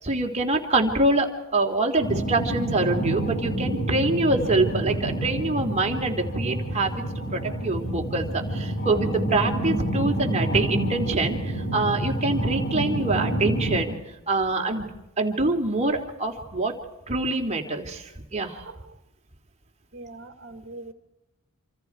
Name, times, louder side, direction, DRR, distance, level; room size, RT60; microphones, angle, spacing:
voice 1, 0.0-14.0 14.3-14.9 15.2-16.8 17.1-18.7, right 2 dB, 30° right, 3 dB, 3.2 m, -25 dB
sound 1, 2.0-13.8, right 1 dB, 45° left, 6.9 m, -28 dB
voice 2, 19.9-20.9, right 2 dB, 50° right, 8 dB, 2.3 m, -42 dB
27.5 x 27.5 x 4.7 m, 0.94 s
head